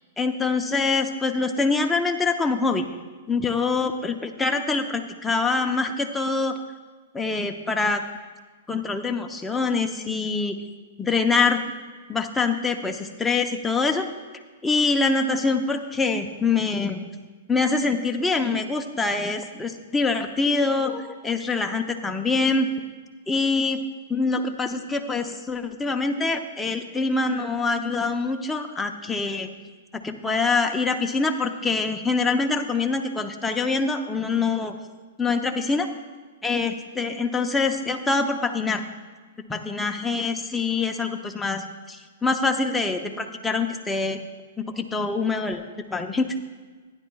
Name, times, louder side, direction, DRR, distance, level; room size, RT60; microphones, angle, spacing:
voice 1, 0.2-2.8 3.3-6.6 7.1-8.0 8.7-10.6 11.0-11.6 12.1-14.1 14.6-17.0 17.5-22.7 23.3-23.8 24.1-29.5 29.9-34.8 35.2-35.9 36.4-38.8 39.5-44.2 44.8-45.6 45.9-46.3, left 4 dB, 10° left, 4 dB, 0.7 m, -24 dB
15.0 x 10.5 x 2.3 m, 1.4 s
hypercardioid pair, 130°, 0 cm